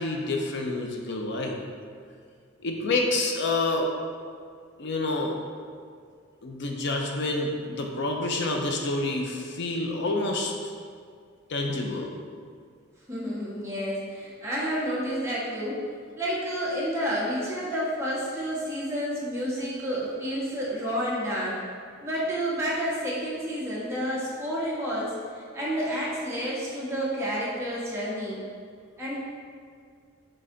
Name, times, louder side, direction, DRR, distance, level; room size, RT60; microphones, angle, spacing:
voice 1, 0.0-1.6 2.6-3.9 4.8-5.4 6.4-10.5 11.5-12.1, left 2 dB, 60° left, 2 dB, 0.6 m, -28 dB
voice 2, 13.1-15.8 16.1-21.6 22.0-28.4 29.0-29.2, equal, 15° right, -8 dB, 1.5 m, -30 dB
7.5 x 3.3 x 3.9 m, 2.1 s
head